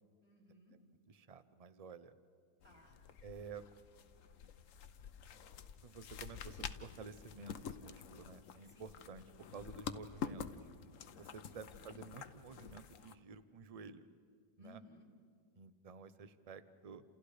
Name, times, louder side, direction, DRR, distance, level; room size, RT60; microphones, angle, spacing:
voice 1, 0.2-0.7 2.6-3.1 8.7-9.0 11.1-11.6 14.6-15.1, left 1 dB, 5° right, -1 dB, 4.8 m, -62 dB
voice 2, 1.1-2.1 3.2-3.6 5.8-9.3 9.5-10.7 11.2-14.1 14.6-14.8 15.6-17.0, right 5 dB, 35° right, 13 dB, 0.6 m, -52 dB
sound 1, 2.6-13.1, left 7 dB, 55° left, 1.1 m, -49 dB
29.5 x 28.0 x 5.0 m, 2.2 s
omnidirectional pair, 1.9 m